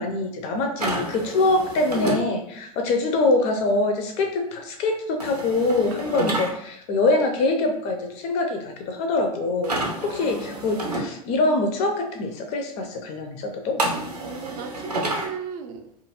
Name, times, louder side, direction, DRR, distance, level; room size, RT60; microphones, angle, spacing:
voice 1, 0.0-9.7 10.0-13.8, left 2 dB, 35° left, 4 dB, 0.4 m, -24 dB
sound 1, 0.8-2.2 5.2-6.5 9.6-11.0 13.8-15.3, right 1 dB, 85° right, 0.6 m, -29 dB
voice 2, 10.0-10.7 14.2-15.9, right 6 dB, 40° right, 5 dB, 0.5 m, -36 dB
2.7 x 2.5 x 2.8 m, 0.72 s
figure-of-eight pair, 85°, 20 cm